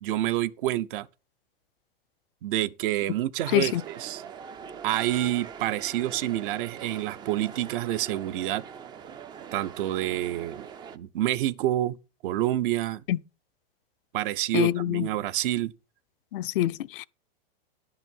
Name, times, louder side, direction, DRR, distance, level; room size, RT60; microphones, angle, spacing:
voice 1, 0.0-1.1 2.4-4.2 4.8-8.6 9.5-10.6 10.9-12.0 12.2-13.0 14.1-15.7, right 14 dB, 60° right, 0.7 m, -28 dB
sound 1, 3.5-11.0, right 7 dB, 15° right, 0.4 m, -42 dB
voice 2, 14.5-15.1 16.3-17.1, left 13 dB, 65° left, 0.5 m, -25 dB
10.5 x 5.7 x 5.3 m
hypercardioid pair, 135°, 30 cm